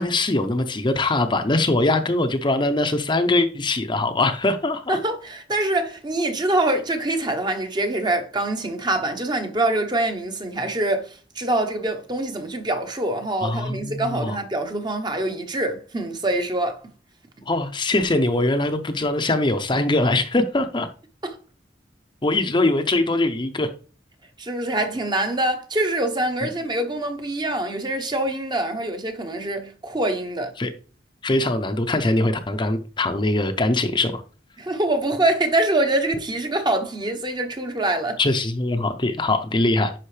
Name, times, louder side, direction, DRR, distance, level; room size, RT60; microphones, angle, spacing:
voice 1, 0.0-5.0 13.4-14.4 17.5-20.9 22.2-23.7 26.4-26.5 30.6-30.7 31.2-34.2 38.2-40.0, left 2 dB, 25° left, 0.7 m, -22 dB
voice 2, 4.9-16.8 21.2-21.4 24.4-30.5 34.6-38.2, right 1 dB, 25° right, 1.0 m, -24 dB
10.0 x 5.5 x 3.3 m
head